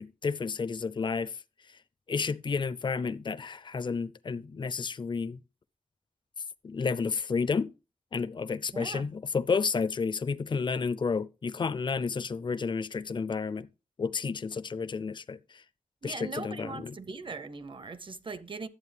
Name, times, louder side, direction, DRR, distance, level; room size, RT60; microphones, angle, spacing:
voice 1, 0.0-1.4 2.1-5.4 6.6-7.7 8.1-13.7 14.0-15.6 16.0-16.9, left 5 dB, 35° left, 0.4 m, -31 dB
voice 2, 8.7-9.1 16.0-18.7, right 4 dB, 40° right, 0.7 m, -40 dB
11.0 x 7.9 x 3.3 m
wide cardioid pair, 110°, 13 cm